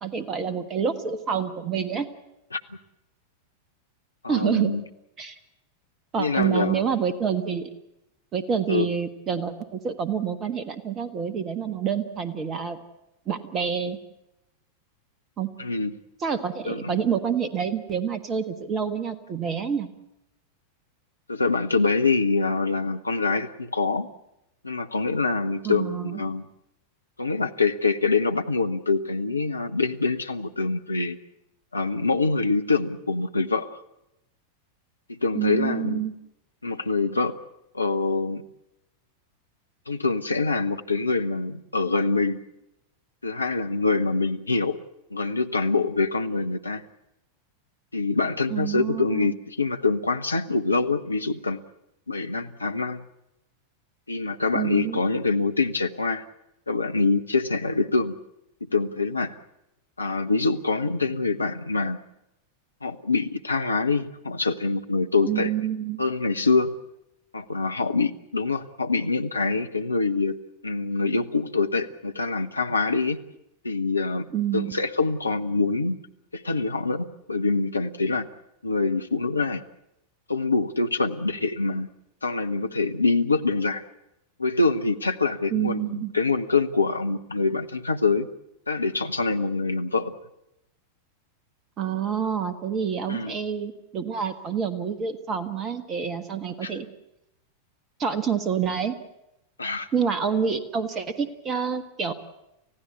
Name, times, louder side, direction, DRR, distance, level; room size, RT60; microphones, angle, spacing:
voice 1, 0.0-2.1 4.3-4.7 5.2-5.4 6.1-7.7 8.3-12.8 13.3-14.0 15.4-15.5 16.2-19.9 25.6-26.2 35.3-36.1 48.5-49.3 54.5-55.0 65.2-66.0 74.3-74.7 85.5-86.1 91.8-96.9 98.0-98.9 99.9-102.1, right 7 dB, 30° right, 12 dB, 1.5 m, -27 dB
voice 2, 4.2-4.8 6.2-6.8 8.7-8.9 15.6-15.9 16.7-17.0 21.3-24.1 24.6-26.5 27.2-31.2 31.7-33.8 35.1-36.0 36.6-37.3 37.7-38.4 39.9-42.4 43.2-44.8 45.1-46.8 47.9-51.6 52.1-53.1 54.1-56.2 56.7-58.1 58.7-59.4 60.0-62.0 62.8-65.5 66.0-66.7 67.3-70.4 70.6-73.2 73.6-76.0 76.3-78.3 78.6-79.6 80.3-81.9 82.2-83.8 84.4-88.3 88.7-90.1 93.1-93.4 96.6-96.7 99.6-99.9, left 3 dB, 80° left, 7 dB, 0.9 m, -25 dB
30.0 x 15.5 x 8.2 m, 0.88 s
figure-of-eight pair, 90°, 0 cm